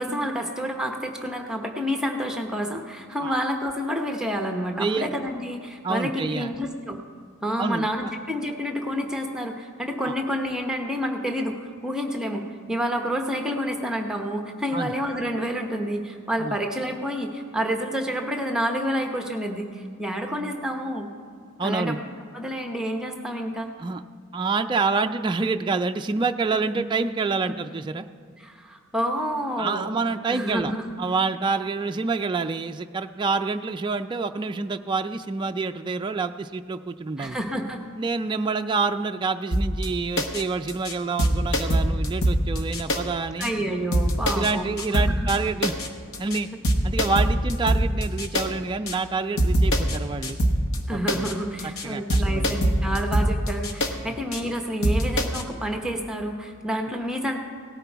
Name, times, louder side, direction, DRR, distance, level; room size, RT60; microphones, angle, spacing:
voice 1, 0.0-7.0 7.4-21.1 21.6-22.0 22.3-23.7 28.4-29.9 30.2-30.9 37.2-37.8 43.4-44.7 44.9-45.3 50.9-57.4, equal, 5° right, 3 dB, 0.9 m, -29 dB
voice 2, 4.8-5.1 5.8-6.6 7.6-8.1 10.0-10.1 14.7-14.9 16.4-16.6 21.6-22.0 23.8-24.0 24.3-28.1 29.6-30.7 31.0-37.4 38.0-43.5 44.3-45.7 46.2-46.5 46.8-50.4 50.9-51.3 51.8-52.6, right 4 dB, 20° right, 6 dB, 0.3 m, -27 dB
sound 1, 39.5-39.9 40.2-40.4 40.7-40.9 41.2-43.0 43.4-43.5 43.9-44.5 44.8-45.4 45.6-45.9 46.1-46.4 46.6-48.5 48.9-49.0 49.4-50.0 50.2-50.8 51.1-51.3 51.6-51.8 52.1-53.9 54.3-54.4 54.8-55.4, equal, 65° left, 1.2 m, -23 dB
17.5 x 10.5 x 4.6 m, 2.1 s
head